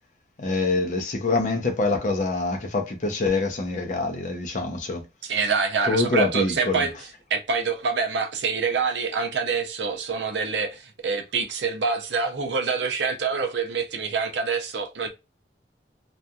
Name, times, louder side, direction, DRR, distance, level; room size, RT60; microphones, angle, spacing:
voice 1, 0.4-5.1 5.9-6.9, left 3 dB, 45° left, 0.6 m, -25 dB
voice 2, 5.2-7.0 7.3-15.1, right 5 dB, 80° right, 0.6 m, -26 dB
2.7 x 2.4 x 2.2 m
head